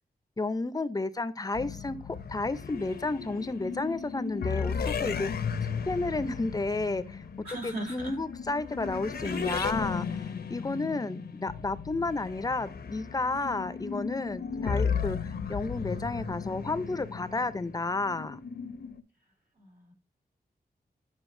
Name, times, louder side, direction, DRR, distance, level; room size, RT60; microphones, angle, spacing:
voice 1, 0.4-10.2 10.5-18.4, left 3 dB, 20° left, 0.5 m, -32 dB
sound 1, 1.6-19.0, left 6 dB, 70° left, 0.7 m, -35 dB
voice 2, 7.4-8.1 9.2-9.4 19.6-19.9, right 1 dB, 75° right, 2.9 m, -38 dB
9.0 x 5.6 x 2.5 m
wide cardioid pair, 120°, 17 cm